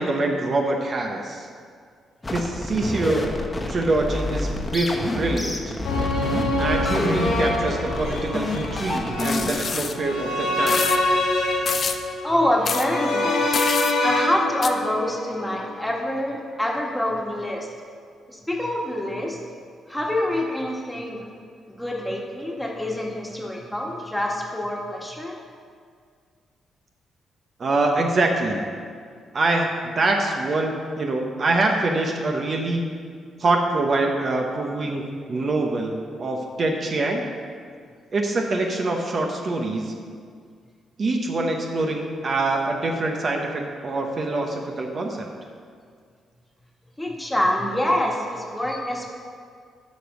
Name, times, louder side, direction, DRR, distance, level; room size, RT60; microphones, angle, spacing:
voice 1, 0.0-1.5 2.3-3.3 3.7-5.8 6.6-10.8 27.6-28.6 29.3-32.8 33.4-37.3 38.1-39.9 41.0-45.3, right 2 dB, 45° right, 2 dB, 0.9 m, -24 dB
sound 1, 2.2-9.5, left 2 dB, 20° left, 1.1 m, -28 dB
sound 2, 5.8-16.0 16.3-16.4, left 2 dB, 90° left, 2.5 m, -25 dB
sound 3, 9.2-9.9 10.7-11.0 11.7-12.0 12.6-12.9 13.5-13.9 14.6-14.7, left 5 dB, 50° left, 0.6 m, -27 dB
voice 2, 12.2-13.5 14.0-17.7 18.3-19.4 19.9-21.3 21.7-25.3 47.0-49.1, left 1 dB, 5° left, -1 dB, 1.6 m, -26 dB
9.4 x 5.3 x 6.4 m, 2.1 s
cardioid pair, 85°, 0 cm